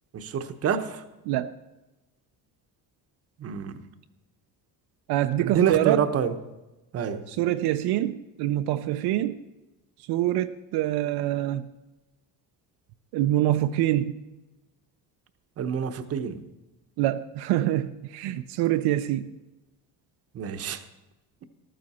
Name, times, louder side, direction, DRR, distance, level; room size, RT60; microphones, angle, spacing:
voice 1, 0.1-1.0 3.4-3.8 5.4-6.4 6.9-7.3 15.6-16.4 20.3-20.8, right 8 dB, 35° right, 9 dB, 0.9 m, -27 dB
voice 2, 5.1-6.0 7.3-9.4 10.1-11.7 13.1-14.1 17.0-19.3, right 13 dB, 75° right, 8 dB, 0.7 m, -25 dB
14.0 x 13.0 x 4.2 m, 1.0 s
cardioid pair, 150°, 40 cm